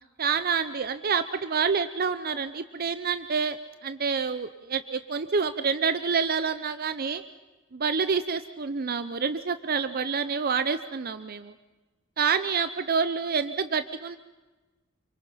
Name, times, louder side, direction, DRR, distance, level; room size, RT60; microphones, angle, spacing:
voice 1, 0.2-3.6 3.8-7.2 7.7-11.5 12.2-14.2, right 5 dB, 45° right, 11 dB, 0.7 m, -27 dB
28.0 x 24.0 x 5.7 m, 1.2 s
head